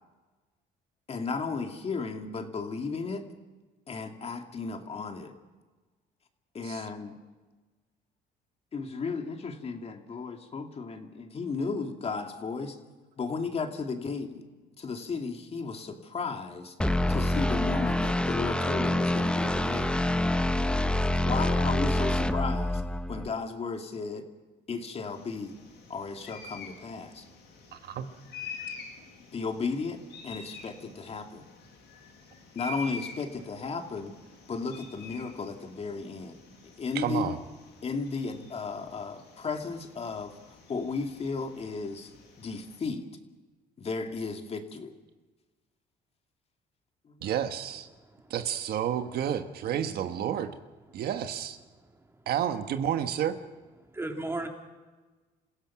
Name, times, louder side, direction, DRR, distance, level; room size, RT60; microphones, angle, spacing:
voice 1, 1.1-3.2 3.9-5.3 6.5-7.1 8.7-12.8 13.2-14.4 14.8-16.7 17.1-19.9 21.3-22.8 23.1-24.2 24.7-25.5 25.9-27.2 29.3-31.5 32.5-34.1 34.5-36.4 36.8-37.4 37.8-40.3 40.7-42.1 42.4-43.1 43.8-44.9 47.1-47.3, left 4 dB, 35° left, 5 dB, 2.3 m, -34 dB
sound 1, 16.8-23.3, left 1 dB, 5° left, 0.9 m, -26 dB
sound 2, 25.1-42.8, left 3 dB, 85° left, 7.8 m, -47 dB
voice 2, 27.7-28.0 36.9-37.4 47.2-47.9 48.3-50.5 50.9-51.6 52.3-53.4, right 10 dB, 65° right, 8 dB, 1.4 m, -30 dB
voice 3, 47.9-48.3 50.9-51.0 51.7-52.3 53.8-54.5, right 2 dB, 15° right, 3 dB, 3.2 m, -38 dB
27.5 x 16.5 x 6.0 m, 1.3 s
cardioid pair, 110°, 17 cm